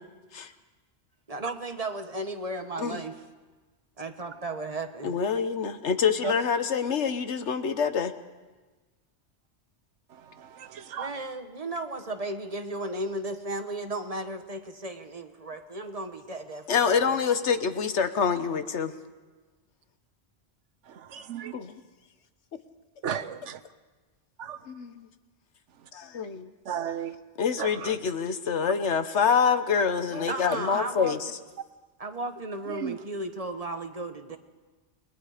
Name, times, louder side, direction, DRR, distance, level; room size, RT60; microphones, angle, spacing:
voice 1, 1.3-3.2 4.0-5.1 11.0-17.2 30.1-31.2 32.0-34.4, right 2 dB, 30° right, 6 dB, 1.4 m, -35 dB
voice 2, 5.0-8.1 16.7-18.9 21.5-21.7 24.7-25.1 25.9-26.5 27.4-31.3, left 6 dB, 75° left, 10 dB, 1.4 m, -26 dB
voice 3, 21.1-21.5 23.0-23.6 24.4-24.6 26.7-27.1 27.6-27.7 32.8-32.9, right 8 dB, 90° right, 13 dB, 1.2 m, -32 dB
29.0 x 21.0 x 5.0 m, 1.3 s
omnidirectional pair, 1.2 m